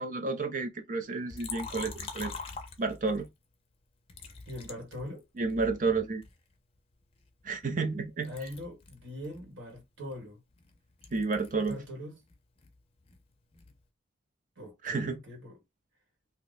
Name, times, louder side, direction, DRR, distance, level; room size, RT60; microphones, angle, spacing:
voice 1, 0.0-2.3 2.8-3.3 5.4-6.2 7.4-8.3 11.1-11.8 14.8-15.2, right 4 dB, 40° right, 0.6 m, -31 dB
Liquid, 1.3-3.3 4.1-5.6 6.2-8.0 8.2-11.9 12.2-13.8, left 4 dB, 30° left, 0.5 m, -45 dB
voice 2, 4.5-5.2 8.2-10.4 11.7-12.2 14.6-15.6, left 1 dB, 80° right, 1.5 m, -42 dB
2.7 x 2.2 x 4.0 m
head